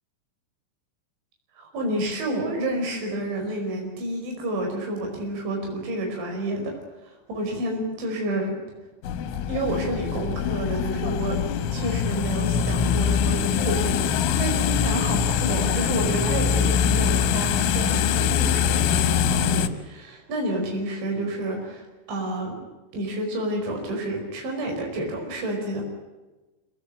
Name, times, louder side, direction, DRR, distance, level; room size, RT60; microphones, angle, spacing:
voice 1, 1.6-6.7 7.0-8.6 9.5-11.4 11.7-22.6 22.9-25.8, right 1 dB, 70° right, 2 dB, 7.3 m, -29 dB
sound 1, 9.0-19.7, left 8 dB, 90° left, 3.8 m, -23 dB
25.5 x 17.5 x 9.8 m, 1.2 s
omnidirectional pair, 5.5 m